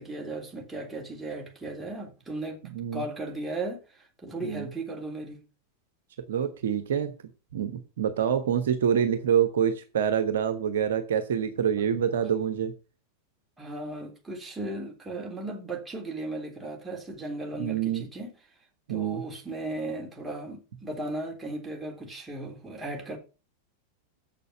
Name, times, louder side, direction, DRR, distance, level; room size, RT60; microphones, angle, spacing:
voice 1, 0.0-2.6 2.9-5.4 13.6-18.3 18.9-23.2, right 2 dB, 10° right, 3.4 m, -36 dB
voice 2, 2.7-3.0 4.4-4.7 6.3-7.1 7.5-12.7 17.6-18.0 18.9-19.2, right 8 dB, 60° right, 1.1 m, -26 dB
7.6 x 6.8 x 7.5 m
figure-of-eight pair, 90°, 0 cm